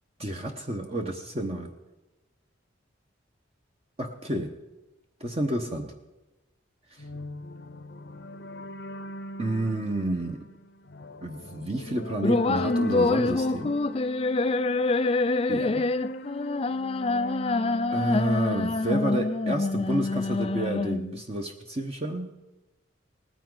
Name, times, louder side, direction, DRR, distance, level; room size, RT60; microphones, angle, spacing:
voice 1, 0.2-1.7 4.0-4.5 5.2-5.9 6.9-7.0 9.4-10.4 11.2-13.8 15.5-15.8 17.9-22.4, right 1 dB, 30° right, 3 dB, 1.0 m, -30 dB
sound 1, 7.0-19.5, left 1 dB, 55° left, 0.8 m, -39 dB
sound 2, 12.2-21.2, left 3 dB, 30° left, 0.4 m, -26 dB
19.0 x 14.5 x 4.0 m, 1.0 s
head